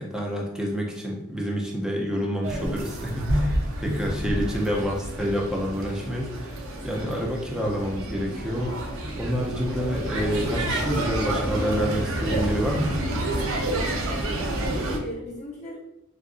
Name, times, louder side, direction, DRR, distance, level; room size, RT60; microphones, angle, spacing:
voice 1, 0.0-13.0, equal, 5° right, -2 dB, 0.5 m, -28 dB
sound 1, 2.4-15.0, right 1 dB, 60° right, 0.5 m, -29 dB
voice 2, 3.9-4.8 6.9-7.4 14.6-15.8, left 1 dB, 30° left, -4 dB, 0.8 m, -38 dB
3.5 x 2.5 x 2.4 m, 0.86 s
head